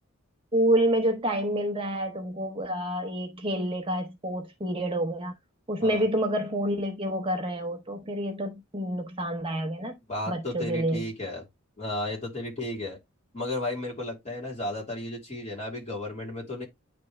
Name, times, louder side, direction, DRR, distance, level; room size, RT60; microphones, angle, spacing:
voice 1, 0.5-5.3 5.7-10.0 10.3-11.0, right 1 dB, 25° right, 0.8 m, -28 dB
voice 2, 10.1-11.4 11.8-13.0 13.3-16.7, left 1 dB, 35° left, 3.1 m, -33 dB
9.8 x 3.5 x 3.1 m
head